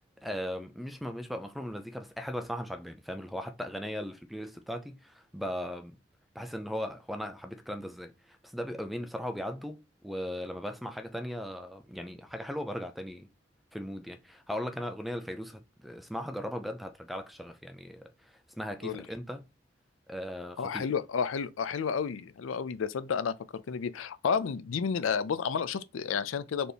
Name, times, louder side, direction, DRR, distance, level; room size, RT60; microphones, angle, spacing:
voice 1, 0.2-6.0 6.4-13.3 13.7-19.4 20.1-20.9, equal, ahead, 0.4 m, -38 dB
voice 2, 20.6-26.7, left 6 dB, 85° left, 0.4 m, -31 dB
4.3 x 2.9 x 3.3 m
head